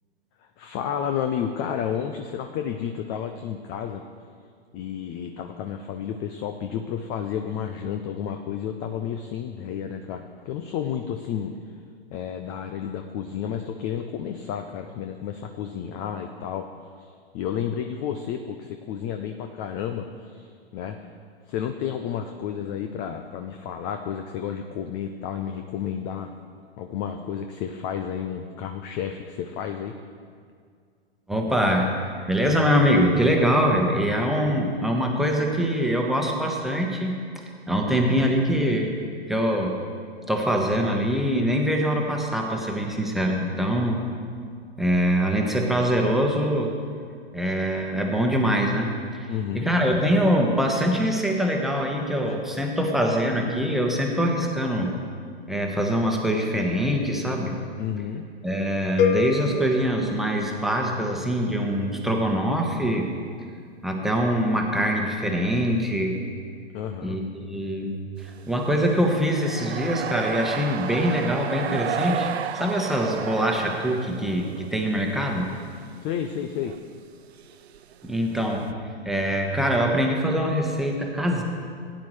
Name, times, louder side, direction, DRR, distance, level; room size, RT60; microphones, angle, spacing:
voice 1, 0.4-4.0 4.7-11.5 12.1-21.1 21.5-26.3 26.8-29.9 49.3-49.7 57.8-58.3 66.7-67.2 76.0-76.7, left 8 dB, 20° left, 6 dB, 0.3 m, -31 dB
voice 2, 31.3-38.9 39.3-39.8 40.3-44.0 44.8-46.7 47.3-54.9 55.5-57.6 58.4-63.1 63.8-66.2 67.0-75.5 78.0-78.7 79.0-81.4, equal, ahead, 0 dB, 1.1 m, -24 dB
sound 1, 59.0-61.1, left 7 dB, 55° left, 1.0 m, -27 dB
sound 2, 68.2-74.9 75.2-75.8 76.1-76.2 76.6-76.8 77.4-78.7, right 8 dB, 75° right, 0.6 m, -33 dB
17.0 x 9.6 x 3.2 m, 2.1 s
hypercardioid pair, 115°, 32 cm